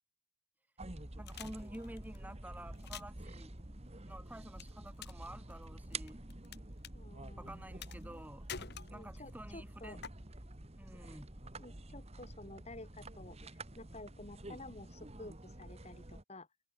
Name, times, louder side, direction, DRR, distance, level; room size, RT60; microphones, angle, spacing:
sound 1, 0.8-16.2, right 2 dB, 30° right, 1.9 m, -49 dB
voice 1, 1.2-3.6 4.0-6.2 7.4-10.0 10.8-11.3, right 1 dB, 10° right, 3.4 m, -50 dB
sound 2, 1.3-2.2 2.7-3.2 4.6-5.2 5.5-6.6 6.8-6.9 7.8-8.2 8.5-9.3 10.0-10.1, left 7 dB, 50° left, 2.0 m, -47 dB
voice 2, 6.9-7.7 8.9-10.0 11.6-16.5, left 2 dB, 30° left, 4.8 m, -52 dB
head